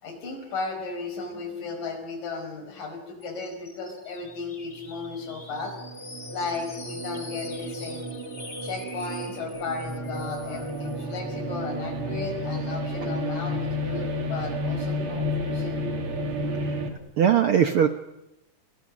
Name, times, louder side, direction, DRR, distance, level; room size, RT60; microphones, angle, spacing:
voice 1, 0.0-5.8 6.3-8.1 8.6-15.8, left 4 dB, 85° left, 6 dB, 6.6 m, -35 dB
sound 1, 3.2-11.2, left 3 dB, 20° left, 2.2 m, -45 dB
sound 2, 5.0-16.9, left 1 dB, 45° right, 3.2 m, -31 dB
voice 2, 17.2-17.9, right 8 dB, 65° right, 9 dB, 1.4 m, -20 dB
29.0 x 28.5 x 6.4 m, 0.92 s
omnidirectional pair, 3.7 m